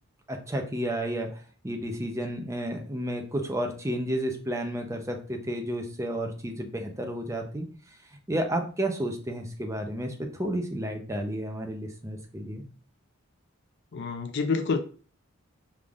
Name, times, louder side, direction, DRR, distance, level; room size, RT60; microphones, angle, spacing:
voice 1, 0.3-1.3 1.6-7.7 8.3-12.6, right 1 dB, 15° right, 3 dB, 0.7 m, -31 dB
voice 2, 13.9-14.8, left 4 dB, 55° left, 8 dB, 0.4 m, -27 dB
5.1 x 3.6 x 2.5 m, 0.41 s
head